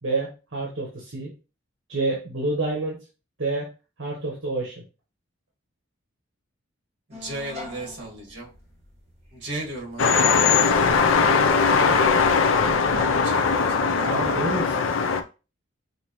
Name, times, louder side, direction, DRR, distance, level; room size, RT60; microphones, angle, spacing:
voice 1, 0.0-1.3 1.9-3.0 3.4-3.7 4.0-4.8 14.0-14.8, right 2 dB, 75° right, -2 dB, 1.2 m, -28 dB
sound 1, 7.1-13.3, left 1 dB, 30° right, 1.3 m, -43 dB
voice 2, 7.1-8.5 9.3-10.2 12.9-14.3, right 2 dB, 60° right, -2 dB, 1.8 m, -35 dB
sound 2, 10.0-15.2, left 5 dB, 80° left, 0.5 m, -20 dB
5.5 x 2.7 x 3.0 m, 0.32 s
head